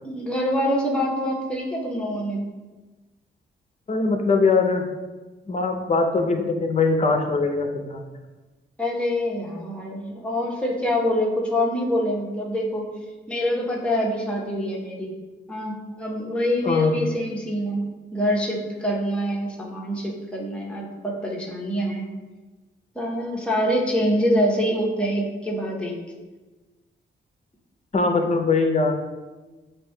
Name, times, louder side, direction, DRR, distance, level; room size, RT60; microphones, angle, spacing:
voice 1, 0.0-2.4 8.8-12.9 13.3-15.1 15.5-17.9 18.1-22.0 22.9-26.0, equal, 5° left, -3 dB, 0.9 m, -25 dB
voice 2, 3.9-4.9 5.5-8.1 16.6-17.0 27.9-28.9, left 3 dB, 35° left, 4 dB, 0.6 m, -21 dB
7.4 x 2.7 x 2.2 m, 1.2 s
cardioid pair, 90°, 20 cm